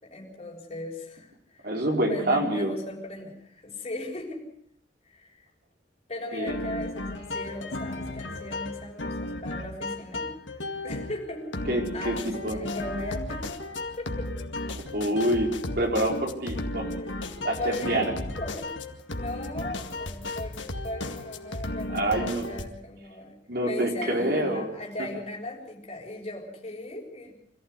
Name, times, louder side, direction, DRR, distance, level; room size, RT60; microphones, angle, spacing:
voice 1, 0.0-1.8 2.1-4.5 5.0-5.5 6.1-10.3 10.8-11.5 11.9-13.5 14.0-14.3 17.0-18.7 19.2-23.4 23.6-27.3, left 1 dB, 35° left, -2 dB, 6.4 m, -38 dB
voice 2, 1.6-2.7 6.3-6.6 11.7-12.1 12.4-12.6 14.8-16.9 17.4-18.1 21.9-22.4 23.5-24.7, right 1 dB, 55° right, 1 dB, 4.8 m, -26 dB
sound 1, 6.5-22.7, left 2 dB, 85° left, 2.1 m, -35 dB
26.0 x 15.0 x 8.3 m, 0.72 s
head